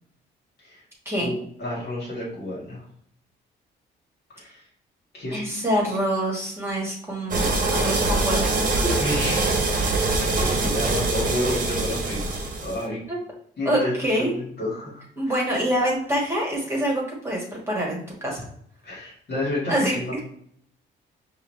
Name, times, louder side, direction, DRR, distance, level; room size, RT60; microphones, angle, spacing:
voice 1, 1.2-2.8 4.3-4.6 5.1-5.4 9.0-9.6 9.9-13.0 13.6-13.9 14.2-15.4 18.8-20.2, left 1 dB, 55° left, -5 dB, 1.7 m, -30 dB
voice 2, 5.3-8.5 8.8-9.0 13.1-13.2 13.6-14.3 15.2-18.4 19.7-20.2, right 1 dB, 10° right, -3 dB, 1.5 m, -26 dB
sound 1, 7.3-12.8, right 3 dB, 45° right, 0.9 m, -23 dB
4.7 x 2.7 x 3.2 m, 0.66 s
cardioid pair, 90°, 20 cm